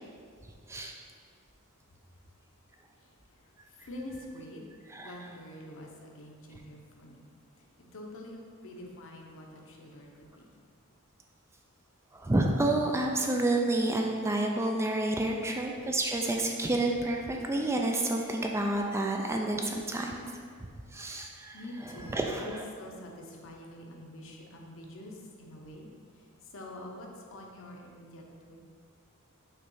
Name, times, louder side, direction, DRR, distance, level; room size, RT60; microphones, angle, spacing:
voice 1, 3.8-4.6 5.0-7.2 7.8-10.5 15.3-15.4 21.5-25.9 26.5-28.6, left 1 dB, 60° left, 0 dB, 0.8 m, -46 dB
voice 2, 4.9-5.3 12.1-20.2 20.9-22.7, right 2 dB, 10° right, 1 dB, 0.3 m, -29 dB
5.7 x 3.1 x 5.4 m, 2.2 s
head